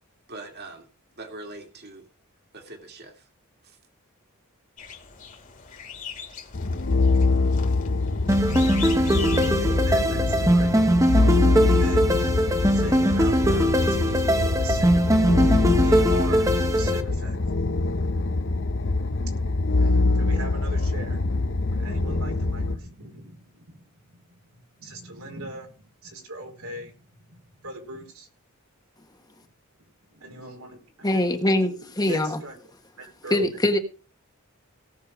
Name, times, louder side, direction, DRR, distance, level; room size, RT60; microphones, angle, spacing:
voice 1, 0.3-0.8 1.2-2.0 2.5-3.1, right 2 dB, 50° right, 2.4 m, -41 dB
sound 1, 4.8-9.8, left 7 dB, 40° left, 2.4 m, -40 dB
sound 2, 6.5-22.8, left 2 dB, 60° left, 1.0 m, -24 dB
sound 3, 8.3-17.0, equal, 15° right, 1.2 m, -21 dB
voice 2, 9.5-18.5 19.5-24.2 24.8-28.3 30.1-31.2 31.8-32.5 33.0-33.5, right 2 dB, 85° right, 4.8 m, -40 dB
voice 3, 31.0-32.4 33.3-33.8, left 1 dB, 20° left, 1.4 m, -23 dB
17.5 x 6.9 x 5.0 m
head